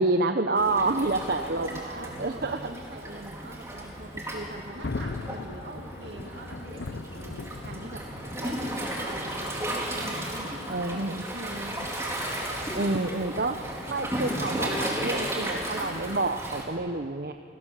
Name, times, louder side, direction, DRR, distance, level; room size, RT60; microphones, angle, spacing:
voice 1, 0.0-2.6 10.7-11.2 12.7-17.3, right 2 dB, 60° right, 7 dB, 0.9 m, -28 dB
Waves surf, 0.6-16.6, right 1 dB, 15° right, 4.0 m, -34 dB
voice 2, 1.6-8.0 8.4-11.7, right 1 dB, 80° right, 0 dB, 2.0 m, -43 dB
Thunder, 4.2-14.9, left 3 dB, 80° left, 0.7 m, -42 dB
30.0 x 20.0 x 7.6 m, 2.5 s
head